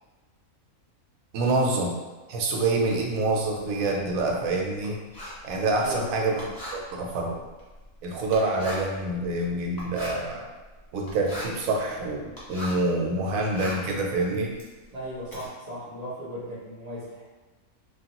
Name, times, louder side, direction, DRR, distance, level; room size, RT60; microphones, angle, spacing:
voice 1, 1.3-2.0 2.3-5.0 5.4-6.4 6.7-7.4 8.0-10.5 10.9-14.5, right 2 dB, 70° right, 0 dB, 1.0 m, -26 dB
Writing, 2.7-12.9 13.3-15.5, left 1 dB, 25° left, 0.5 m, -41 dB
voice 2, 5.7-6.3 14.9-17.2, equal, 45° right, -8 dB, 0.5 m, -36 dB
3.2 x 2.2 x 2.8 m, 1.2 s
omnidirectional pair, 1.6 m